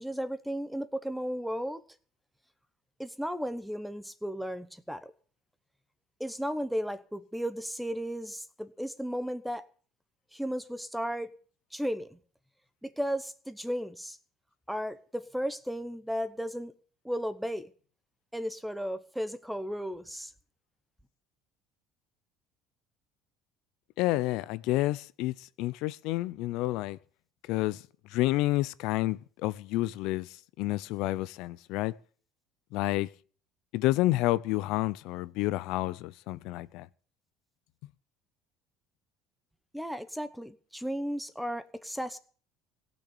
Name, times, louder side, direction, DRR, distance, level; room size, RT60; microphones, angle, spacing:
voice 1, 0.0-1.8 3.0-5.1 6.2-9.6 10.3-11.3 11.7-12.2 12.8-14.2 14.7-16.7 17.0-17.7 18.3-20.3 39.7-42.2, equal, ahead, 0.9 m, -34 dB
voice 2, 24.0-27.0 27.5-27.8 28.1-31.9 32.7-33.1 33.7-36.9, left 17 dB, 70° left, 0.6 m, -29 dB
17.0 x 6.4 x 8.4 m
cardioid pair, 135°, 0 cm